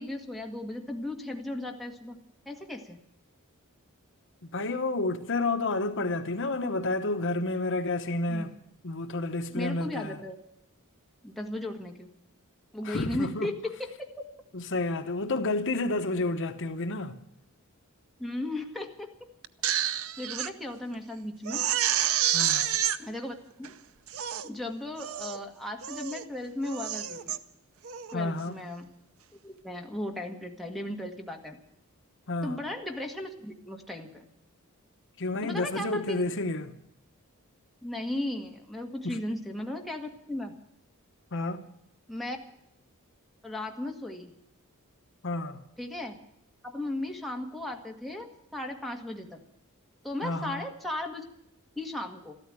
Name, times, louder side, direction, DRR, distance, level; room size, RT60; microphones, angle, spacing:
voice 1, 0.0-2.2 2.5-3.0 8.3-8.6 9.5-10.4 11.2-12.1 12.7-14.3 18.2-19.3 19.6-19.8 20.2-21.7 23.0-23.7 24.4-27.4 28.1-28.9 29.4-31.6 32.4-34.3 35.4-36.3 37.8-40.5 42.1-42.4 43.4-44.3 45.8-46.2 46.6-49.4 50.0-51.2 51.8-52.3, left 1 dB, ahead, 1.8 m, -36 dB
voice 2, 4.4-8.5 8.8-10.2 12.8-13.5 14.5-17.2 22.3-22.8 28.1-28.6 32.3-32.6 35.2-36.8 39.0-39.2 41.3-41.7 45.2-45.6 50.2-50.6, left 2 dB, 60° left, 1.1 m, -30 dB
Crying sobbing, 19.4-20.5 20.9-21.0 21.4-23.0 23.6-23.7 24.1-24.5 25.0-25.4 25.8-26.2 26.6-27.4 27.8-28.1, right 10 dB, 70° right, 0.7 m, -29 dB
14.0 x 13.0 x 7.6 m
head